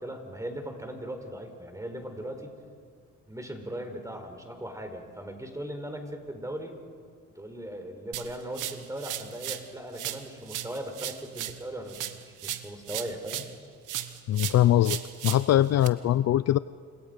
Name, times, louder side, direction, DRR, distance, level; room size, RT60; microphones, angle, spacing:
voice 1, 0.0-2.5 3.3-6.7 7.3-12.1 12.4-13.4, right 1 dB, 10° right, 5 dB, 4.4 m, -38 dB
sound 1, 8.1-9.7 10.0-13.6 13.9-15.9, right 12 dB, 85° right, 1.5 m, -36 dB
voice 2, 14.3-15.0 15.2-16.6, left 12 dB, 60° left, 16 dB, 0.5 m, -22 dB
30.0 x 27.5 x 5.3 m, 2.3 s
cardioid pair, 90°, 30 cm